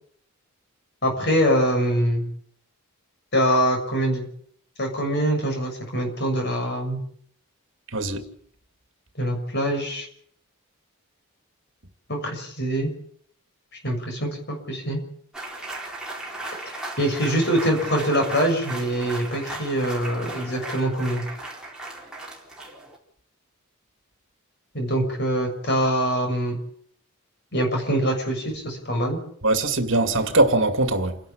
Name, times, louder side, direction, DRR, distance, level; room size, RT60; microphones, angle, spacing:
voice 1, 1.0-2.2 3.3-4.3 4.8-7.0 9.2-10.1 12.1-12.9 13.8-15.0 16.7-21.2 24.7-26.5 27.5-29.2, equal, 50° left, 6.9 m, -24 dB
voice 2, 7.9-8.2 29.4-31.2, right 2 dB, 60° right, 2.3 m, -21 dB
sound 1, 15.3-23.0, right 2 dB, 5° right, 4.2 m, -36 dB
28.5 x 11.5 x 8.7 m
head